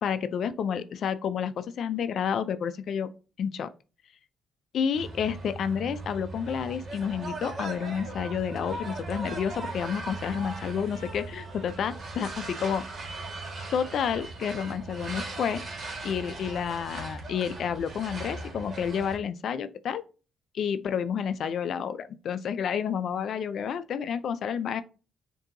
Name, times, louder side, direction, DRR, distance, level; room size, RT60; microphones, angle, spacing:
voice 1, 0.0-3.1 3.4-3.7 4.7-12.8 13.7-15.6 16.0-20.0 20.5-24.8, left 7 dB, 65° left, 0.4 m, -30 dB
sound 1, 4.9-19.2, right 2 dB, 45° right, 1.6 m, -38 dB
6.5 x 2.7 x 2.6 m
cardioid pair, 90°, 0 cm